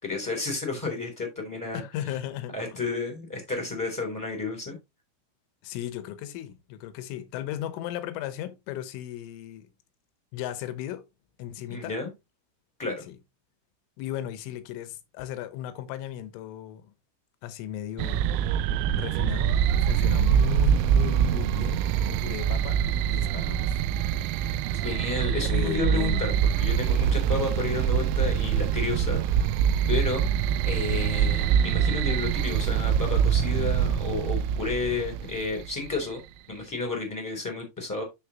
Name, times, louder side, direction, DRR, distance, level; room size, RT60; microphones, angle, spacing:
voice 1, 0.0-1.8 2.5-4.7 11.7-12.1 12.8-13.0 24.8-26.3 26.6-29.6 29.9-30.3 30.6-36.2 36.5-38.0, left 3 dB, 5° left, 1.9 m, -31 dB
voice 2, 1.7-2.8 5.6-9.7 10.3-11.0 11.4-11.9 13.1-13.2 14.0-16.9 17.4-18.2 18.9-19.5 19.8-22.8 23.1-23.8 25.4-26.3, left 11 dB, 75° left, 3.4 m, -36 dB
sound 1, 18.0-35.9, right 9 dB, 90° right, 3.3 m, -24 dB
12.5 x 4.4 x 2.9 m
omnidirectional pair, 5.9 m